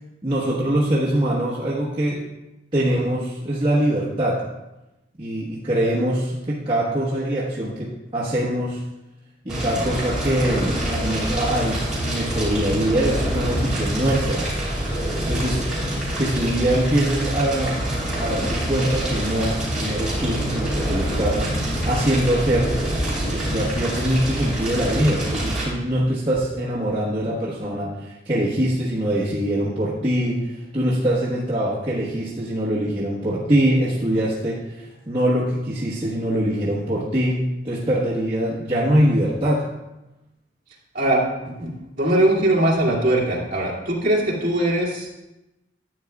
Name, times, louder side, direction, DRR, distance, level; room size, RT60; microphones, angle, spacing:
voice 1, 0.2-2.2 2.7-4.4 5.2-8.8 9.4-14.5 14.7-14.9 15.3-15.7 16.2-21.5 21.8-22.8 23.3-39.7, right 1 dB, 25° right, -9 dB, 1.2 m, -23 dB
Fire, 9.5-25.6, right 1 dB, 5° right, 3.0 m, -26 dB
sound 1, 21.5-24.5 25.0-26.7 27.2-27.3, equal, 70° left, 1.5 m, -35 dB
voice 2, 40.9-41.7 42.0-45.1, right 1 dB, 45° right, -6 dB, 2.2 m, -21 dB
11.0 x 8.8 x 2.3 m, 0.96 s
head